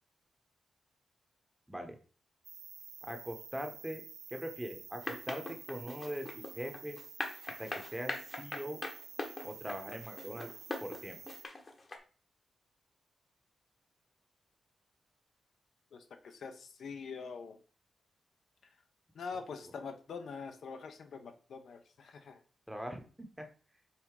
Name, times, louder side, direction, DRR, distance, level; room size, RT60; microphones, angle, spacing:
sound 1, 2.4-11.4, right 7 dB, 75° right, 0.7 m, -50 dB
voice 1, 3.0-4.0 4.3-7.0 7.6-8.8 9.4-10.5 10.8-11.2 22.7-23.5, equal, 5° right, 4 dB, 1.0 m, -41 dB
sound 2, 5.0-12.0, left 2 dB, 30° left, 1.0 m, -41 dB
voice 2, 15.9-17.6 19.1-22.4, left 5 dB, 65° left, 7 dB, 0.8 m, -44 dB
5.7 x 4.0 x 4.7 m, 0.38 s
wide cardioid pair, 160°, 0 cm